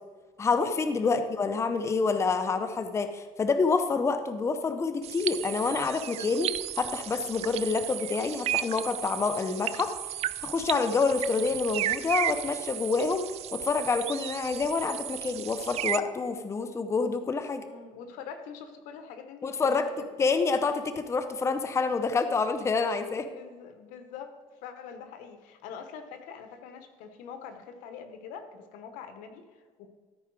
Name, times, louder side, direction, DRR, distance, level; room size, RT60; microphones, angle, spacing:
voice 1, 0.4-9.9 10.4-13.3 13.5-17.6 19.4-19.9 20.2-23.3, left 4 dB, 20° left, 9 dB, 0.6 m, -27 dB
sound 1, 5.0-16.0, right 13 dB, 55° right, 0.4 m, -34 dB
voice 2, 17.6-20.1 23.2-29.9, left 7 dB, 85° left, 8 dB, 1.1 m, -44 dB
13.5 x 4.6 x 4.7 m, 1.5 s
cardioid pair, 125°, 13 cm